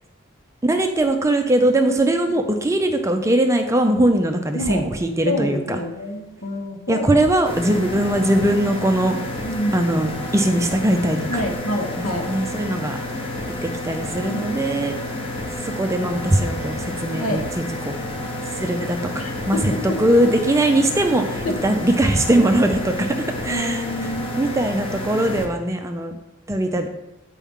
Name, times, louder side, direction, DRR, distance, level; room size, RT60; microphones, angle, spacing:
voice 1, 0.6-5.8 6.9-9.1 9.7-11.4 12.0-13.0 13.6-14.9 15.6-17.4 17.8-17.9 18.6-19.7 20.0-23.8 24.4-26.1 26.5-26.9, right 1 dB, 15° right, 5 dB, 0.4 m, -20 dB
voice 2, 5.2-7.1 9.4-9.9 11.3-12.3 14.3-14.5 17.2-17.4 19.2-20.0 21.4-21.6 23.5-24.6, left 1 dB, 75° left, 2 dB, 1.2 m, -27 dB
sound 1, 7.5-25.4, left 1 dB, 25° left, 0.9 m, -30 dB
8.5 x 4.6 x 3.6 m, 0.95 s
head